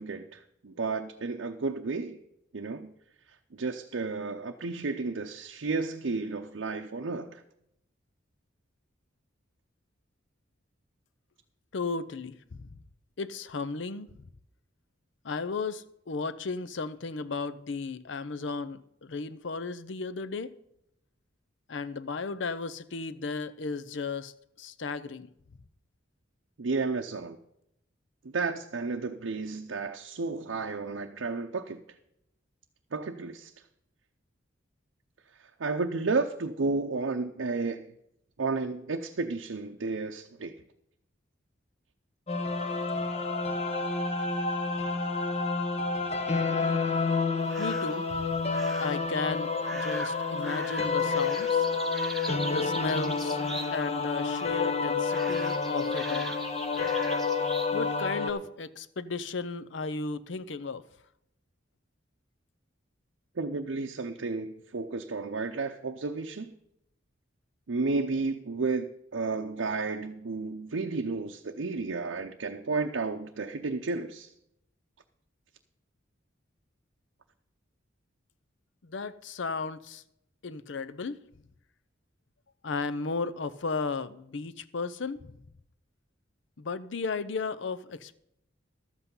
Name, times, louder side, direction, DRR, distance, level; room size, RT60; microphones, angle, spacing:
voice 1, 0.0-2.2 2.5-2.9 3.5-7.4 26.6-27.4 28.2-31.8 32.9-33.5 35.4-37.9 38.4-40.5 63.4-66.5 67.7-74.3, right 3 dB, 75° right, 0.6 m, -32 dB
voice 2, 11.7-12.7 13.2-14.1 15.2-20.5 21.7-25.3 47.6-48.3 48.8-51.7 52.4-53.4 53.7-56.4 57.7-60.8 78.8-80.0 80.4-81.2 82.6-85.3 86.6-88.2, left 4 dB, 65° left, 0.6 m, -34 dB
sound 1, 42.3-58.3, left 4 dB, 35° left, 1.0 m, -29 dB
sound 2, 47.5-48.0 48.5-49.1 49.6-54.0 54.2-54.8 55.1-57.7, right 1 dB, ahead, 0.9 m, -42 dB
12.5 x 8.1 x 5.4 m
head